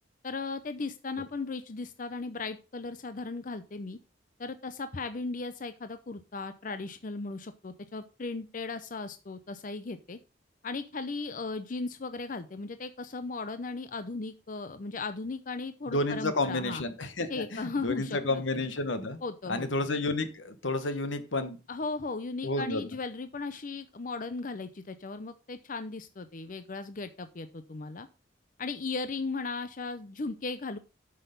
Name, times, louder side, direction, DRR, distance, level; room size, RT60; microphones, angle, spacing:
voice 1, 0.2-4.0 4.4-10.2 10.6-16.8 17.3-18.6 19.2-19.7 21.7-28.1 28.6-30.8, left 3 dB, 45° left, 11 dB, 0.6 m, -37 dB
voice 2, 15.9-19.2 19.5-21.6 22.4-22.8, left 2 dB, 85° left, 10 dB, 1.3 m, -31 dB
8.0 x 6.5 x 5.2 m, 0.31 s
head